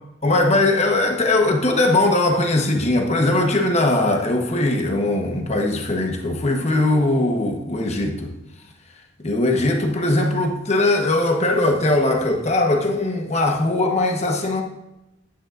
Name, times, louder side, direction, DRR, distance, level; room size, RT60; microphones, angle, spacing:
voice 1, 0.2-8.3 9.2-14.6, left 2 dB, 35° left, 2 dB, 1.1 m, -20 dB
10.5 x 9.6 x 2.5 m, 0.91 s
head